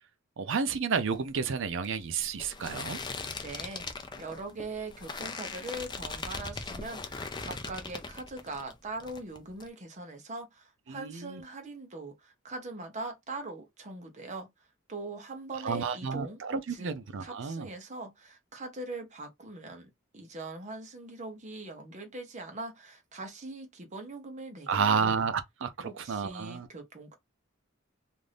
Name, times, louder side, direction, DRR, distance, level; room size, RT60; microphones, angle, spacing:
voice 1, 0.4-3.0 10.9-11.4 15.6-17.7 24.7-26.7, right 5 dB, 65° right, 0.5 m, -31 dB
sound 1, 1.0-8.7 9.0-9.7, left 4 dB, 20° left, 0.5 m, -40 dB
voice 2, 3.4-3.9 4.2-14.5 14.9-16.4 16.7-16.9 17.2-25.1 25.8-27.1, right 2 dB, 35° right, 0.8 m, -41 dB
2.6 x 2.5 x 3.3 m
head